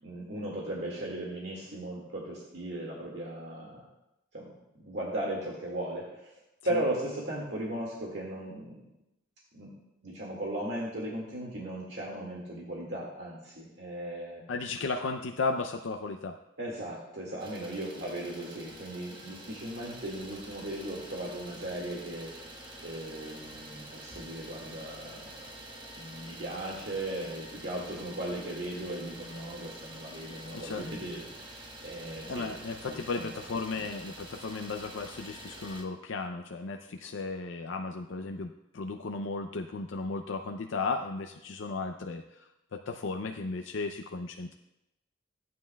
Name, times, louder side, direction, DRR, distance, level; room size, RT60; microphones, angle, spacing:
voice 1, 0.0-3.8 4.3-4.5 4.8-6.3 6.6-8.8 9.5-9.7 10.0-14.4 16.6-22.3 22.8-25.3 25.9-32.5 32.9-33.4, right 1 dB, 65° right, -4 dB, 2.0 m, -37 dB
voice 2, 14.5-16.4 30.5-30.9 32.3-42.4 42.7-44.5, left 3 dB, 85° left, 4 dB, 0.5 m, -35 dB
Idling, 17.4-35.8, right 1 dB, 25° right, 1.2 m, -47 dB
16.5 x 9.4 x 2.3 m, 0.89 s
head